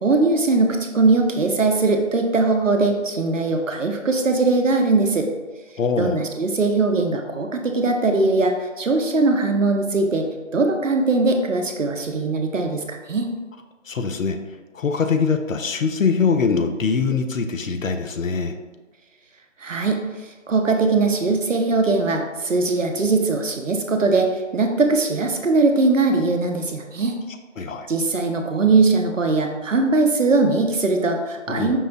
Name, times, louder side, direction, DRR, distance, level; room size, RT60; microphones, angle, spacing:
voice 1, 0.0-5.3 6.0-13.3 19.6-27.2 27.9-31.8, right 3 dB, 75° right, 4 dB, 0.6 m, -20 dB
voice 2, 5.8-6.2 13.9-14.4 14.7-18.6 27.6-27.9 31.5-31.8, left 5 dB, 80° left, 6 dB, 0.5 m, -22 dB
5.3 x 2.0 x 2.5 m, 1.3 s
figure-of-eight pair, 165°, 39 cm